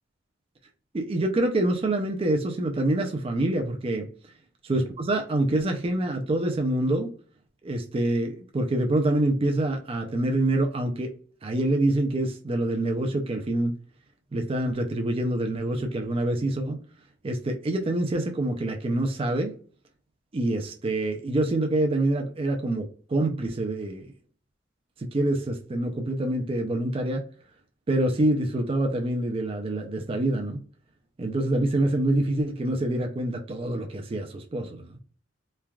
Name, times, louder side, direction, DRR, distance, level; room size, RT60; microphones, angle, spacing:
voice 1, 0.9-4.1 4.7-7.1 7.6-11.1 11.4-13.7 14.3-16.8 17.2-19.5 20.3-24.1 25.0-27.2 27.9-30.6 31.2-34.9, right 1 dB, 30° right, 0.4 m, -26 dB
3.2 x 2.2 x 2.3 m
head